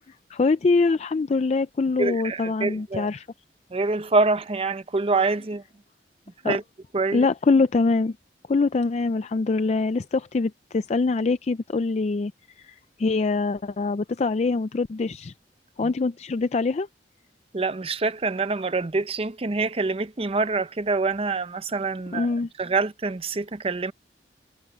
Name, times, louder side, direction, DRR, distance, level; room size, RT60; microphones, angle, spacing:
voice 1, 0.3-3.2 6.4-6.5 7.1-8.2 8.5-12.3 12.6-15.3 15.8-16.9 22.1-22.5, left 3 dB, 40° left, 0.4 m, -24 dB
voice 2, 2.0-3.1 3.7-5.6 6.4-6.6 6.9-7.3 15.8-15.9 17.5-23.9, right 3 dB, 35° right, 0.6 m, -26 dB
head